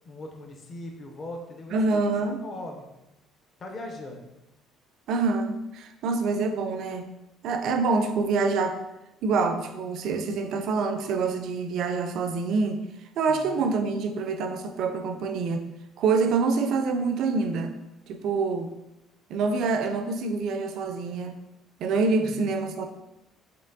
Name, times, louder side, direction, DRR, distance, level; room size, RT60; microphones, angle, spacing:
voice 1, 0.0-2.1 2.4-2.8 3.6-4.3 13.3-13.6 22.2-22.5, left 1 dB, 40° left, 2 dB, 0.6 m, -40 dB
voice 2, 1.7-2.4 5.1-7.1 7.4-8.8 9.2-12.8 13.2-15.6 16.0-17.7 18.1-18.7 19.3-21.4 21.8-22.8, right 4 dB, 65° right, 7 dB, 0.4 m, -26 dB
4.3 x 3.2 x 2.6 m, 0.94 s
cardioid pair, 100°, 0 cm